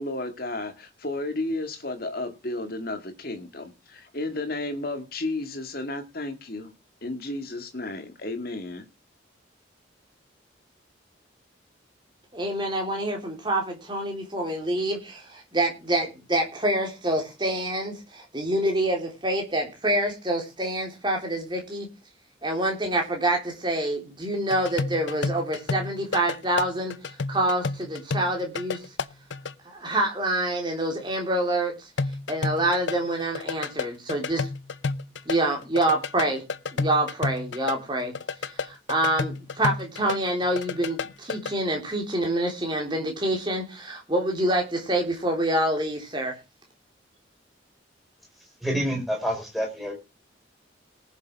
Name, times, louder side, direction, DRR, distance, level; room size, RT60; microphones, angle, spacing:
voice 1, 0.0-6.7 7.0-8.8, left 2 dB, 50° left, 2.0 m, -33 dB
voice 2, 12.3-21.9 22.4-26.9 27.3-28.8 29.7-31.8 32.3-34.5 35.3-36.4 36.7-38.1 38.5-46.3, right 1 dB, 25° right, 3.7 m, -26 dB
sound 1, 24.5-29.5 32.0-35.4 35.6-40.2 40.4-41.5, left 4 dB, 70° left, 0.7 m, -30 dB
voice 3, 48.6-49.9, equal, ahead, 4.6 m, -27 dB
19.0 x 7.2 x 4.7 m
head